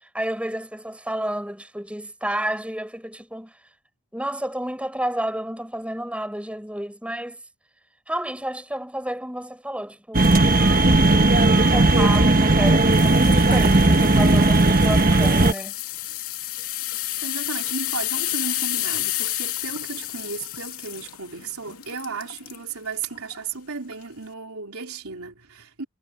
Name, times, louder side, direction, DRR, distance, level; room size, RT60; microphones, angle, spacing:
voice 1, 0.1-3.5 4.1-7.4 8.1-15.8, right 1 dB, 5° right, 7.7 m, -31 dB
sound 1, 10.1-15.5, right 2 dB, 40° right, 1.4 m, -16 dB
sound 2, 12.7-22.6 23.1-23.4 23.9-24.0, left 14 dB, 75° left, 2.8 m, -31 dB
voice 2, 17.2-25.8, right 4 dB, 75° right, 3.8 m, -34 dB
head